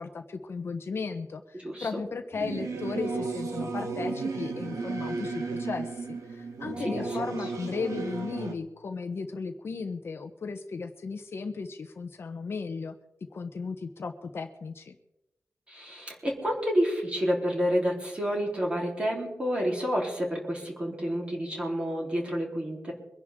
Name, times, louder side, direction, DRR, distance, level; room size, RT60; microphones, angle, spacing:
voice 1, 0.0-12.9 13.3-15.0, left 4 dB, 50° left, 7 dB, 1.0 m, -36 dB
voice 2, 1.6-2.0 6.8-7.0 15.7-22.9, equal, 20° right, -2 dB, 3.8 m, -29 dB
Singing / Musical instrument, 2.3-8.5, right 4 dB, 80° right, 1.9 m, -34 dB
24.0 x 11.0 x 3.7 m, 0.92 s
wide cardioid pair, 180°, 5 cm